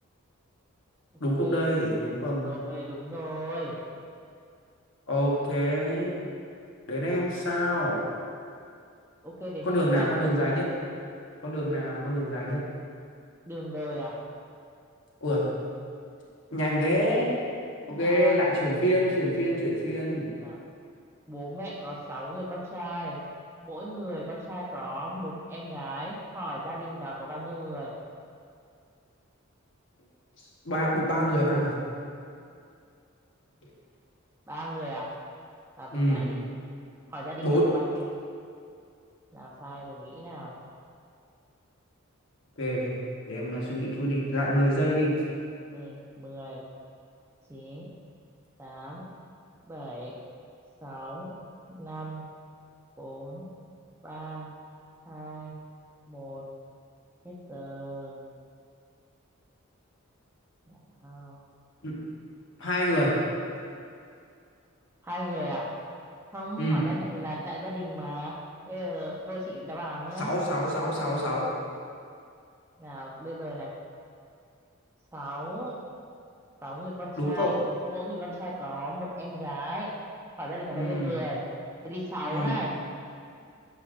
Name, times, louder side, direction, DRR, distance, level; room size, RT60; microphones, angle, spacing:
voice 1, 1.2-2.5 5.1-6.2 6.9-8.0 9.6-10.7 11.4-12.6 15.2-15.5 16.5-17.4 17.9-20.3 30.6-31.7 35.9-36.3 37.4-37.6 42.6-42.9 43.3-45.1 61.8-62.0 62.6-63.1 66.6-66.9 70.2-71.5 77.2-77.5 80.7-81.2 82.3-82.5, equal, 60° left, -5 dB, 1.4 m, -26 dB
voice 2, 2.4-3.8 7.1-7.2 9.2-10.0 13.5-14.2 17.9-18.4 20.4-20.6 21.3-23.2 23.6-28.0 34.5-35.1 35.8-36.3 37.1-37.8 39.3-40.6 45.7-46.6 47.5-47.9 48.6-49.1 49.6-50.2 50.8-51.3 51.7-52.2 53.0-53.5 54.0-54.5 55.1-55.5 56.1-56.4 57.2-58.2 60.7-60.8 61.0-61.4 65.0-65.7 66.3-68.4 68.7-70.3 72.8-73.7 75.1-75.8 76.6-77.6 77.8-79.9 80.4-81.4 81.8-82.7, equal, 10° right, -5 dB, 0.8 m, -36 dB
10.0 x 5.7 x 2.6 m, 2.4 s
head